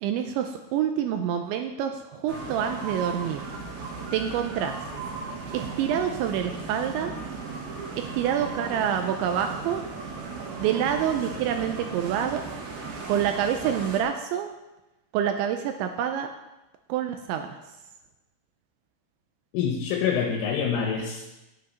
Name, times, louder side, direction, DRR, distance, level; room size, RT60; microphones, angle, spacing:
voice 1, 0.0-3.5 4.1-4.8 5.5-7.1 8.0-9.8 10.6-12.4 13.1-14.5 15.1-16.3 16.9-17.6, right 9 dB, 85° right, 6 dB, 2.8 m, -27 dB
sound 1, 2.3-14.0, right 4 dB, 60° right, 3.1 m, -36 dB
voice 2, 19.5-21.3, left 7 dB, 80° left, 0 dB, 3.5 m, -26 dB
10.0 x 9.5 x 5.5 m, 0.98 s
omnidirectional pair, 5.7 m